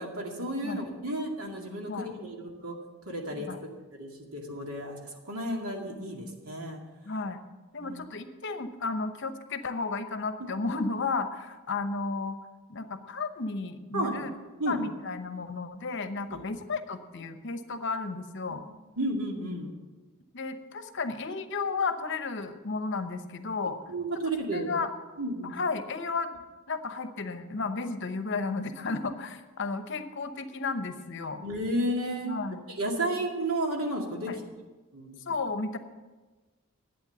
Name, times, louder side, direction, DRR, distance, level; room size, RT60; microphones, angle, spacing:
voice 1, 0.0-2.8 3.1-3.5 3.9-6.8 7.8-8.0 10.4-10.5 13.9-14.8 16.3-16.4 18.5-18.6 19.0-19.7 23.9-24.7 25.2-25.5 31.4-32.3 32.8-34.3 34.9-35.2, right 1 dB, 85° right, 1 dB, 2.3 m, -32 dB
voice 2, 7.0-7.4 7.7-12.4 12.7-14.3 14.7-18.6 20.3-23.8 24.5-24.9 25.4-26.3 26.7-31.4 32.2-32.6 34.3-34.4 35.3-35.8, left 4 dB, 55° left, 9 dB, 0.9 m, -33 dB
11.5 x 8.6 x 6.9 m, 1.3 s
head